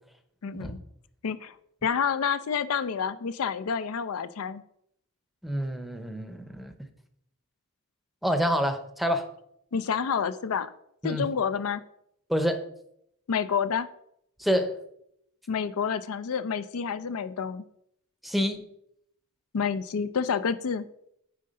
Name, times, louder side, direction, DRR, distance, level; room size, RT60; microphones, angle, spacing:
voice 1, 0.4-0.8 1.2-1.5 1.8-4.6 9.7-10.7 11.0-11.8 13.3-13.9 15.5-17.6 19.5-20.9, left 6 dB, 75° left, 13 dB, 0.5 m, -28 dB
voice 2, 5.4-6.9 8.2-9.2 11.0-11.3 12.3-12.6 14.4-14.8 18.2-18.6, equal, ahead, 8 dB, 0.7 m, -27 dB
9.3 x 3.8 x 5.3 m, 0.74 s
head